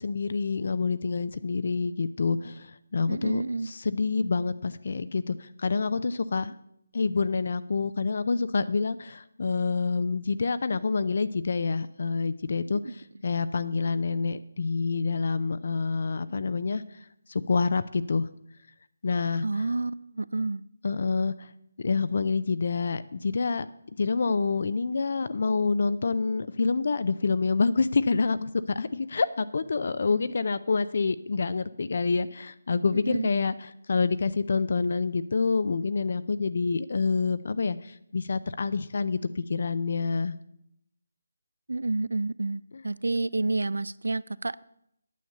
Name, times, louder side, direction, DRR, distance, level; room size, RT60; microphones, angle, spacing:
voice 1, 0.0-6.5 6.9-12.8 13.2-16.8 17.3-18.3 19.0-19.4 20.8-21.5 21.8-23.7 24.0-33.5 33.9-40.4, left 4 dB, 55° left, 0.5 m, -27 dB
voice 2, 3.1-3.8 12.8-13.0 19.4-20.6 32.9-33.3 41.7-44.7, right 3 dB, 85° right, 0.4 m, -29 dB
9.3 x 7.0 x 6.7 m
figure-of-eight pair, 165°, 0 cm